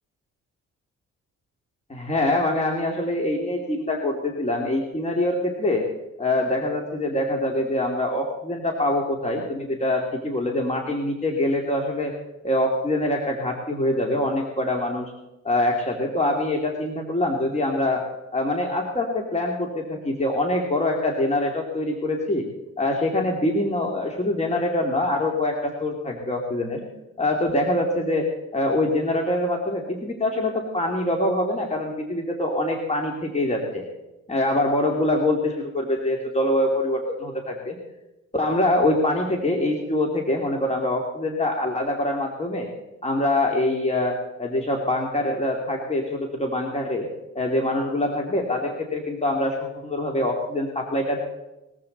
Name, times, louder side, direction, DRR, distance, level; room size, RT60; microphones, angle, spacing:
voice 1, 1.9-5.8 6.2-12.1 12.4-15.1 15.4-18.0 18.3-22.5 22.8-26.8 27.2-33.9 34.3-37.8 38.3-42.7 43.0-47.1 47.3-51.2, left 1 dB, 20° left, 1 dB, 2.9 m, -24 dB
21.0 x 14.5 x 4.2 m, 0.98 s
cardioid pair, 90°, 30 cm